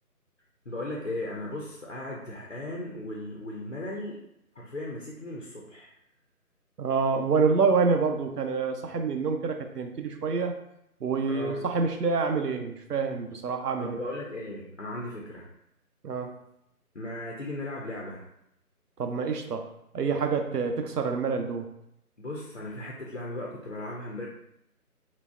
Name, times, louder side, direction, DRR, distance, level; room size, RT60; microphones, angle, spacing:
voice 1, 0.7-4.2 4.6-5.9 11.3-11.7 13.8-15.5 16.9-18.2 22.2-24.3, left 1 dB, 50° left, -2 dB, 0.5 m, -37 dB
voice 2, 6.8-10.5 11.0-14.0 16.0-16.3 19.0-19.7 19.9-21.7, right 4 dB, 85° right, 5 dB, 0.6 m, -27 dB
3.9 x 2.0 x 2.3 m, 0.79 s
figure-of-eight pair, 160°, 46 cm